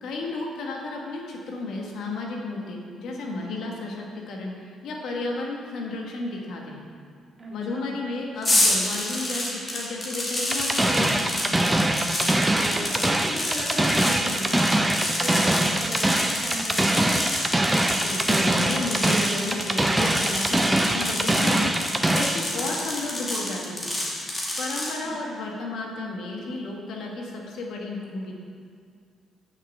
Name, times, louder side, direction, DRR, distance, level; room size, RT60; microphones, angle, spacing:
voice 1, 0.0-6.9 7.5-11.3 17.9-23.9 24.6-28.3, left 2 dB, 75° left, 0 dB, 1.4 m, -33 dB
voice 2, 7.4-8.0 12.5-17.4 25.0-25.4, right 1 dB, 30° right, -4 dB, 2.4 m, -37 dB
sound 1, 8.4-24.9, left 1 dB, 30° left, 2.2 m, -28 dB
sound 2, 10.5-22.5, right 1 dB, 10° right, 0.6 m, -23 dB
6.7 x 6.3 x 6.8 m, 2.2 s
cardioid pair, 90°, 0 cm